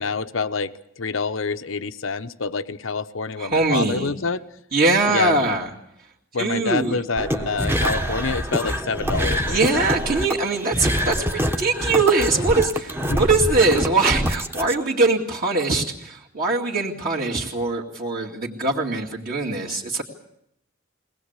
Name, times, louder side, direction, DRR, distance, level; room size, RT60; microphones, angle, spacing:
voice 1, 0.0-4.4 5.1-5.4 6.3-10.0 13.1-13.3, left 4 dB, 70° left, 12 dB, 0.8 m, -27 dB
voice 2, 3.4-4.1 4.7-5.7 6.4-7.0 9.5-20.0, right 3 dB, 45° right, -4 dB, 2.4 m, -22 dB
sound 1, 7.2-14.7, equal, 10° right, 1.2 m, -25 dB
22.0 x 19.0 x 8.1 m, 0.77 s
head